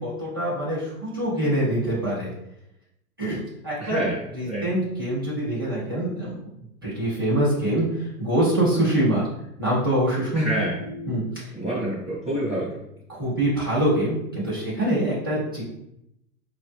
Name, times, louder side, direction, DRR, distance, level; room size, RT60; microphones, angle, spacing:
voice 1, 0.0-2.3 3.2-4.0 4.3-6.3 6.8-7.9 8.2-9.2 9.6-11.5 13.1-15.6, right 1 dB, 20° right, -9 dB, 0.4 m, -24 dB
voice 2, 3.8-4.7 10.3-10.8 11.5-12.8, right 1 dB, ahead, -14 dB, 0.8 m, -28 dB
5.2 x 2.0 x 3.2 m, 0.81 s
hypercardioid pair, 175°, 43 cm